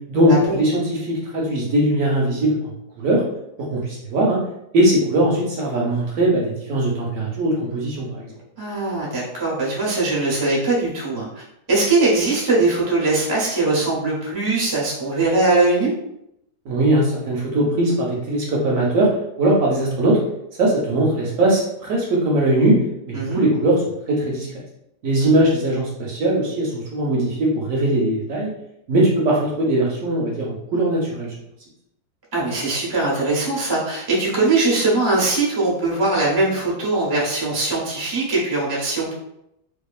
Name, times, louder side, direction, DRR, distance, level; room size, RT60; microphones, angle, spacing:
voice 1, 0.1-2.6 3.0-3.2 3.6-4.4 4.7-8.3 16.7-19.1 19.4-20.2 20.6-22.8 23.1-24.5 25.0-28.5 28.9-31.3, right 1 dB, 65° right, -4 dB, 0.9 m, -20 dB
voice 2, 8.6-15.9 23.1-23.4 25.2-25.4 32.3-39.1, right 2 dB, 30° right, -5 dB, 0.4 m, -21 dB
2.7 x 2.4 x 2.3 m, 0.80 s
omnidirectional pair, 1.8 m